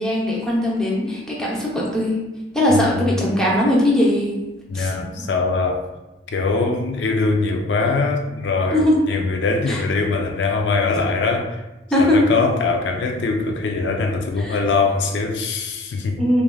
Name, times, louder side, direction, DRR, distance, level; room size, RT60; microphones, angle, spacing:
voice 1, 0.0-2.1 2.5-4.3 4.7-4.9 8.7-9.0 9.7-9.8 11.9-12.2 14.4-14.6 16.2-16.4, left 1 dB, 5° left, -5 dB, 0.6 m, -19 dB
voice 2, 4.7-5.8 6.3-11.6 12.0-16.2, left 3 dB, 85° left, 3 dB, 0.4 m, -22 dB
3.1 x 2.4 x 2.2 m, 1.0 s
head